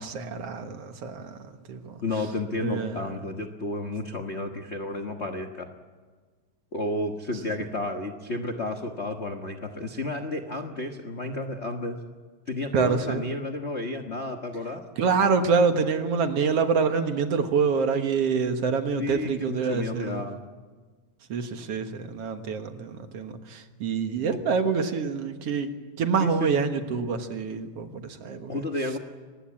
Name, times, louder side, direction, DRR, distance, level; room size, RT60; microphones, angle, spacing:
voice 1, 0.0-1.4 1.7-2.0 2.6-3.0 12.7-13.2 15.0-20.2 21.3-25.7 26.0-28.6, right 5 dB, 60° right, 7 dB, 2.2 m, -26 dB
voice 2, 2.0-5.7 6.7-12.0 12.5-14.8 19.0-20.4 24.2-24.4 26.2-26.6 28.5-29.0, left 2 dB, 70° left, 6 dB, 0.6 m, -32 dB
24.0 x 19.5 x 8.6 m, 1.4 s
omnidirectional pair, 3.4 m